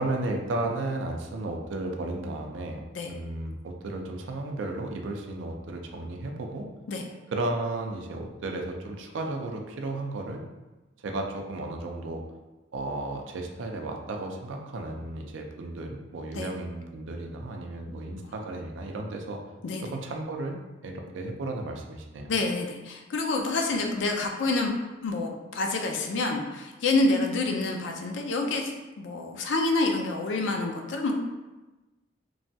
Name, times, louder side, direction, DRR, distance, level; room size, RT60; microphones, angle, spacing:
voice 1, 0.0-6.7 7.3-10.4 11.0-12.2 12.7-19.4 19.8-20.6 20.8-22.3, right 2 dB, 90° right, 2 dB, 0.4 m, -34 dB
voice 2, 22.3-24.7 25.0-31.1, left 2 dB, 75° left, 2 dB, 0.4 m, -28 dB
3.1 x 2.2 x 2.6 m, 1.1 s
head